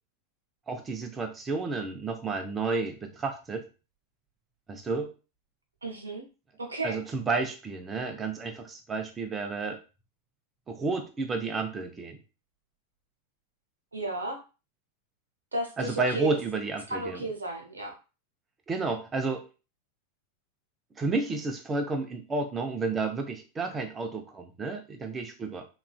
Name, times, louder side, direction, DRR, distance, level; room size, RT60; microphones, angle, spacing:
voice 1, 0.7-3.7 4.7-5.1 6.8-9.8 10.7-12.2 15.8-17.2 18.7-19.4 21.0-25.7, right 3 dB, 20° right, 5 dB, 0.6 m, -31 dB
voice 2, 5.8-6.3 6.6-7.0 13.9-14.4 15.5-16.4 16.9-18.0, right 1 dB, 75° right, 2 dB, 0.8 m, -33 dB
3.1 x 2.5 x 2.2 m, 0.32 s
figure-of-eight pair, 90°, 0 cm